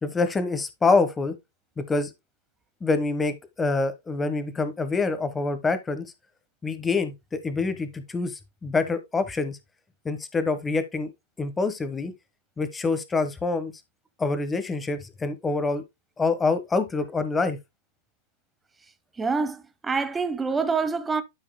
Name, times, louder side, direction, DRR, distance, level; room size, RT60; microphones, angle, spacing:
voice 1, 0.0-1.3 1.8-2.1 2.8-6.1 6.6-9.6 10.0-11.1 11.4-12.1 12.6-13.7 14.2-15.8 16.2-17.6, left 3 dB, 15° left, 1.3 m, -26 dB
voice 2, 19.2-21.2, right 4 dB, 10° right, 1.0 m, -26 dB
12.5 x 4.8 x 2.2 m
hypercardioid pair, 130°, 0 cm